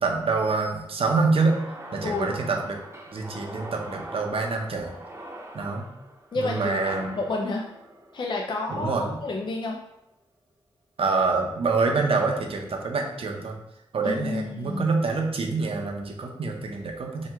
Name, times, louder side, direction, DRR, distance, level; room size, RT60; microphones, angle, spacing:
voice 1, 0.0-1.6 1.9-2.8 3.1-4.9 5.5-5.9 6.3-7.1 8.7-9.2 11.0-13.5 13.9-17.3, right 4 dB, 60° right, 2 dB, 0.6 m, -26 dB
sound 1, 1.3-9.5, right 1 dB, 25° right, 0.6 m, -42 dB
voice 2, 6.3-6.8 7.1-7.7 8.1-9.8 14.0-15.0, left 3 dB, 50° left, 0 dB, 0.4 m, -30 dB
2.9 x 2.2 x 3.4 m, 0.88 s
cardioid pair, 50°, 11 cm